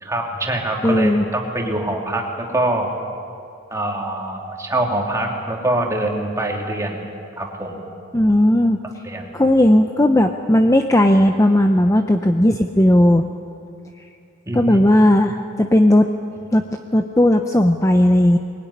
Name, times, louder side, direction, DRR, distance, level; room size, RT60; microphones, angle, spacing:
voice 1, 0.0-2.9 3.7-7.0 7.4-7.8 9.0-9.3 14.5-14.8, right 1 dB, 15° right, 0 dB, 2.9 m, -24 dB
voice 2, 0.8-1.2 8.1-8.8 9.3-13.3 14.5-16.0 16.5-16.6 16.9-18.4, left 1 dB, 15° left, 5 dB, 0.7 m, -15 dB
22.0 x 22.0 x 10.0 m, 2.4 s
head